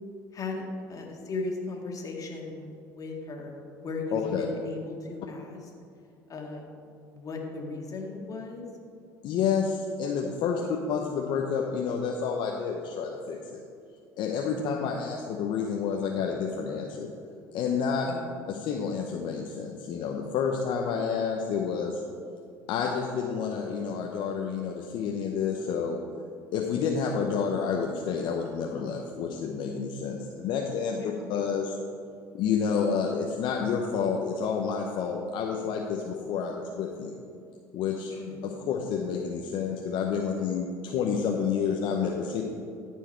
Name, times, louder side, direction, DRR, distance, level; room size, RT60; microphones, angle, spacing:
voice 1, 0.3-5.6 6.3-6.7 7.1-8.7 10.6-10.8 14.5-14.8 18.1-18.3 30.9-31.1 38.2-38.4, left 3 dB, 40° left, 1 dB, 1.8 m, -37 dB
voice 2, 4.1-4.5 9.2-13.6 14.2-17.1 17.5-18.1 18.5-22.0 22.7-26.0 26.5-31.8 32.3-37.2 37.7-42.4, left 6 dB, 65° left, 1 dB, 0.7 m, -29 dB
13.5 x 4.7 x 4.4 m, 2.4 s
hypercardioid pair, 75°, 9 cm